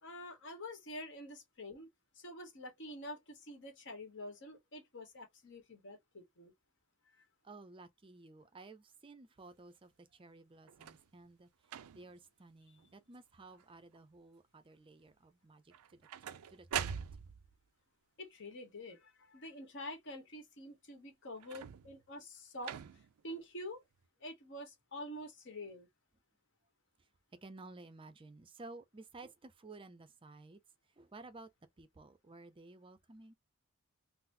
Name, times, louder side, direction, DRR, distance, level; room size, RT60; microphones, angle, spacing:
voice 1, 0.0-1.9 2.1-6.5 7.1-7.2 18.2-22.8 23.2-23.8 24.2-25.9, left 1 dB, 55° left, 1.2 m, -47 dB
voice 2, 7.4-11.5 11.9-16.0 16.5-16.9 22.1-22.2 27.4-30.6 31.0-31.5 31.8-33.3, right 3 dB, 25° right, 0.5 m, -54 dB
sound 1, 10.7-11.1 11.6-12.2 12.8-13.2 13.4-14.0 15.7-17.6 21.4-22.0 22.6-23.2 24.0-24.1, right 8 dB, 85° right, 0.4 m, -43 dB
3.9 x 2.0 x 2.6 m
head